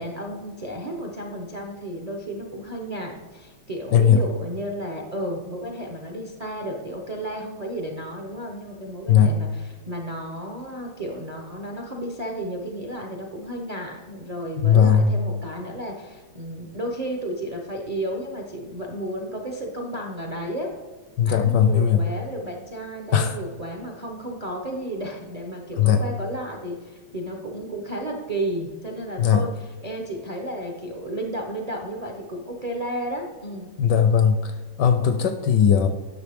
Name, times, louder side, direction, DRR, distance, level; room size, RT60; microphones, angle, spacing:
voice 1, 0.0-20.7 21.2-29.5 29.8-33.7, right 1 dB, 65° right, 0 dB, 0.4 m, -33 dB
voice 2, 14.6-15.1 21.2-22.1 23.1-23.4 25.8-26.0 29.2-29.4 33.8-35.9, left 7 dB, 75° left, 9 dB, 1.1 m, -18 dB
10.5 x 6.3 x 3.5 m, 1.3 s
omnidirectional pair, 2.2 m